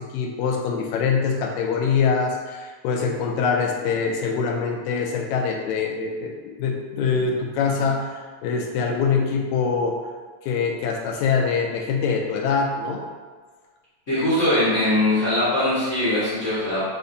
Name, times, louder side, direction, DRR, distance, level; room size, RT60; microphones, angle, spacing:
voice 1, 0.0-10.0 10.4-13.0, left 5 dB, 80° left, 1 dB, 1.9 m, -24 dB
voice 2, 14.1-16.9, left 1 dB, 50° left, -11 dB, 0.8 m, -21 dB
6.5 x 2.6 x 2.7 m, 1.5 s
omnidirectional pair, 3.3 m